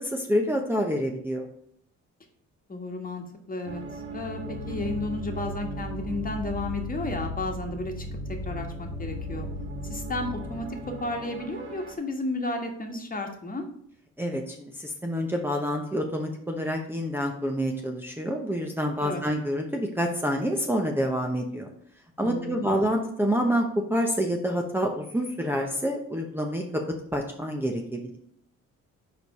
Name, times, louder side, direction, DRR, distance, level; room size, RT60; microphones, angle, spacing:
voice 1, 0.0-1.5 14.2-21.7 22.2-23.6 23.9-26.8 27.1-28.2, equal, 5° right, 0 dB, 0.9 m, -27 dB
voice 2, 2.7-3.8 4.1-8.0 8.4-9.5 9.8-13.6 19.0-19.2 22.2-22.8, left 2 dB, 30° left, 3 dB, 1.5 m, -33 dB
sound 1, 3.6-12.0, equal, 40° right, 1.8 m, -36 dB
5.1 x 4.7 x 5.5 m, 0.69 s
cardioid pair, 90°, 30 cm